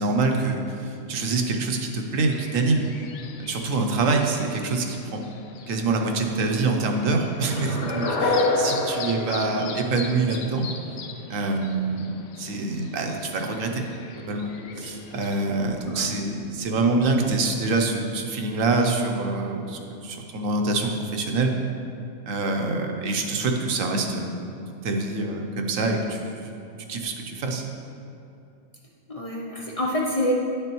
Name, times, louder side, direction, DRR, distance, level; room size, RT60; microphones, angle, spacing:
voice 1, 0.0-2.8 3.4-5.3 5.7-10.7 11.3-13.9 14.2-14.5 14.8-21.5 22.3-24.6 24.8-26.4 26.9-27.6, right 3 dB, 75° right, 3 dB, 1.1 m, -25 dB
sound 1, 2.3-15.5, left 6 dB, 90° left, 1.0 m, -42 dB
sound 2, 7.4-10.5, left 2 dB, 60° left, 1.2 m, -26 dB
voice 2, 15.9-16.2 29.1-30.3, equal, 45° left, -2 dB, 0.5 m, -27 dB
9.9 x 6.8 x 3.0 m, 2.7 s
omnidirectional pair, 1.4 m